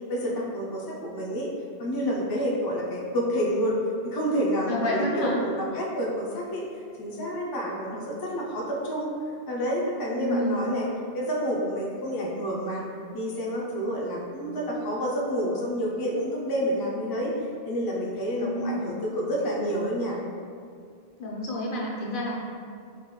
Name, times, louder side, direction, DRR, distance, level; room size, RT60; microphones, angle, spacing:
voice 1, 0.1-1.5 1.8-3.8 4.0-6.6 7.0-9.1 9.5-10.9 11.1-12.8 13.1-17.3 17.7-20.2, equal, 35° left, -4 dB, 0.4 m, -29 dB
voice 2, 4.7-5.4 10.2-10.7 18.4-18.8 21.2-22.4, equal, 60° left, -3 dB, 0.7 m, -29 dB
3.8 x 2.9 x 3.1 m, 2.3 s
omnidirectional pair, 1.1 m